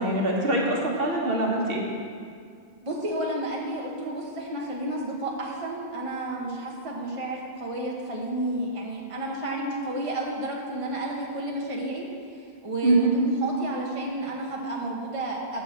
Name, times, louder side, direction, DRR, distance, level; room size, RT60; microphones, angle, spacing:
voice 1, 0.0-1.8 12.8-13.1, right 2 dB, 65° right, -2 dB, 1.6 m, -23 dB
voice 2, 2.8-12.1 12.4-15.6, right 1 dB, 30° right, -2 dB, 1.3 m, -31 dB
8.8 x 6.5 x 7.3 m, 2.2 s
omnidirectional pair, 1.0 m